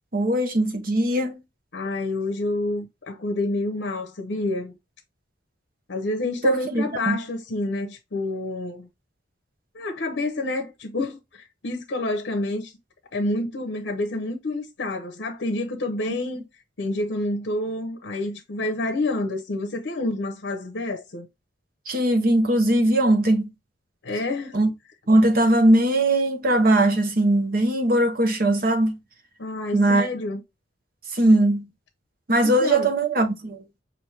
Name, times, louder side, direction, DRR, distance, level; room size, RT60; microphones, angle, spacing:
voice 1, 0.1-1.4 6.4-7.2 21.9-23.5 24.5-24.7 25.1-29.0 29.7-30.1 31.1-31.7 32.3-33.6, right 1 dB, 50° right, 0.9 m, -20 dB
voice 2, 1.7-4.8 5.9-8.9 9.7-12.7 13.1-16.4 16.8-21.3 24.0-24.6 29.4-30.4 32.4-32.9, left 2 dB, 65° left, 0.7 m, -28 dB
5.9 x 2.6 x 3.2 m
head